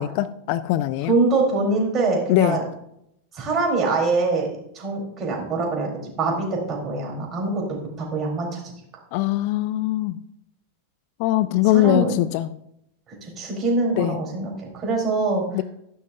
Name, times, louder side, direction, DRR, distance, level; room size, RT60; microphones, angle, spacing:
voice 1, 0.0-1.1 2.3-2.6 9.1-10.2 11.2-12.5 14.0-14.2 15.5-15.6, left 15 dB, 45° left, 15 dB, 0.4 m, -21 dB
voice 2, 1.1-2.6 3.3-4.5 4.7-5.9 6.2-7.6 8.0-8.6 11.7-12.1 13.2-15.4, right 3 dB, 25° right, -1 dB, 4.4 m, -23 dB
14.5 x 11.5 x 2.8 m, 0.77 s
figure-of-eight pair, 90°, 0 cm